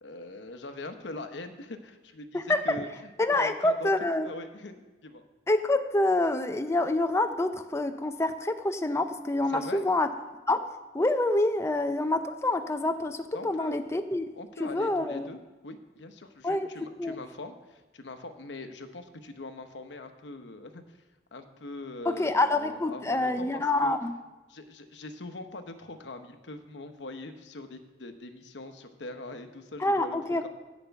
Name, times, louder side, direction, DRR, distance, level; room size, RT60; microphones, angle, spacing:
voice 1, 0.0-2.9 3.3-3.9 4.2-5.2 9.5-9.8 13.3-13.8 14.3-21.0 21.3-24.0 24.5-30.5, left 2 dB, 90° left, 8 dB, 0.9 m, -42 dB
voice 2, 3.2-4.3 5.5-10.1 10.5-10.6 10.9-14.2 14.6-15.3 16.4-16.7 17.0-17.2 22.1-24.1 29.8-30.5, left 2 dB, 15° left, 8 dB, 0.5 m, -27 dB
10.5 x 5.2 x 8.2 m, 1.2 s
head